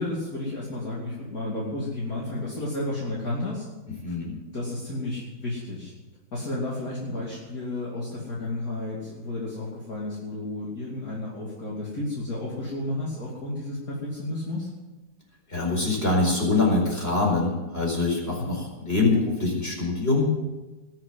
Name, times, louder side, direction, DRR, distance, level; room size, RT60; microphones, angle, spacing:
voice 1, 0.0-3.7 4.1-4.2 4.5-5.9 6.3-14.7 18.3-18.5, left 2 dB, 50° left, -5 dB, 3.2 m, -32 dB
voice 2, 4.0-4.4 15.5-20.3, left 3 dB, 30° left, -2 dB, 4.9 m, -24 dB
20.0 x 7.6 x 7.7 m, 1.1 s
omnidirectional pair, 2.0 m